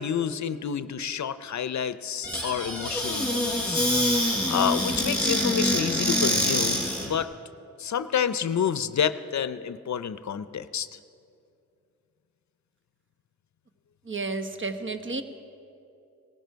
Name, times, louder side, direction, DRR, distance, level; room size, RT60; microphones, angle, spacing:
voice 1, 0.0-3.9 4.5-7.3 7.8-10.9, left 8 dB, 65° left, 14 dB, 0.6 m, -29 dB
Squeak / Cupboard open or close, 2.2-7.1, equal, 5° left, 4.5 m, -25 dB
voice 2, 14.1-15.2, right 3 dB, 40° right, 7 dB, 1.1 m, -31 dB
18.0 x 15.0 x 4.6 m, 2.6 s
cardioid pair, 70°, 30 cm